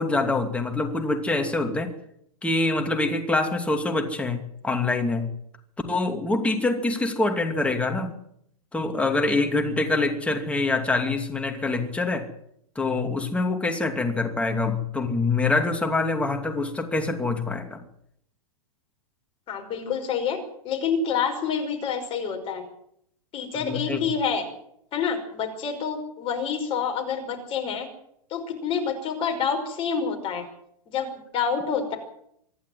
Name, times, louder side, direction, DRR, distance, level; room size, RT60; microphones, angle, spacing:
voice 1, 0.0-1.9 2.4-5.3 5.9-8.2 8.7-12.3 12.8-17.8 23.6-24.0, left 3 dB, 5° left, 4 dB, 2.6 m, -25 dB
voice 2, 19.5-20.4 20.6-22.6 23.3-24.4 24.9-27.9 28.3-30.4 30.9-32.0, left 6 dB, 30° left, 4 dB, 5.4 m, -27 dB
25.5 x 11.0 x 9.6 m, 0.71 s
hypercardioid pair, 140°, 19 cm